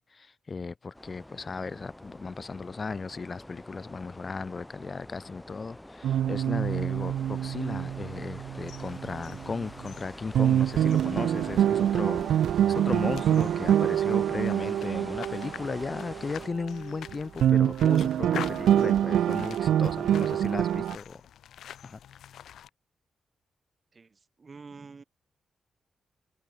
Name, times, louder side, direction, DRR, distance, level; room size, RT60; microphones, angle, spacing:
voice 1, 0.0-12.3 12.7-21.2 21.8-22.0, left 4 dB, 40° left, 1.4 m, -36 dB
sound 1, 0.9-16.5, left 1 dB, 10° left, 3.3 m, -47 dB
sound 2, 6.0-9.9 10.3-17.1 17.4-21.0, right 10 dB, 90° right, 0.4 m, -25 dB
sound 3, 8.6-22.7, left 10 dB, 85° left, 1.1 m, -47 dB
voice 2, 23.9-25.0, right 4 dB, 40° right, 3.6 m, -47 dB
cardioid pair, 75°, 0 cm